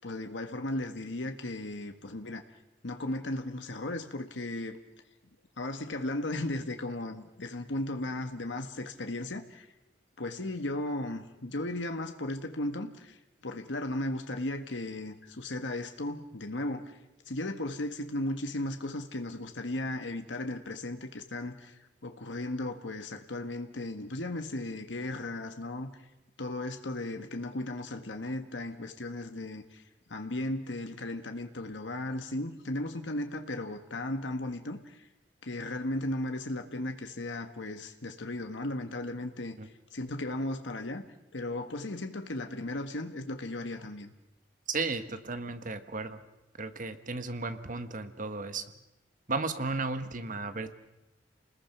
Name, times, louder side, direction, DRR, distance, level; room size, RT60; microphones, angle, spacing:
voice 1, 0.0-2.4 2.8-4.8 5.6-9.7 10.2-13.2 13.4-17.0 17.3-25.9 26.4-29.8 30.1-35.1 35.4-41.1 41.3-44.1, left 1 dB, 90° left, 6 dB, 1.5 m, -36 dB
voice 2, 44.7-46.2 46.6-48.6 49.3-50.7, right 3 dB, 45° right, 9 dB, 1.4 m, -34 dB
29.0 x 20.5 x 6.0 m, 0.93 s
head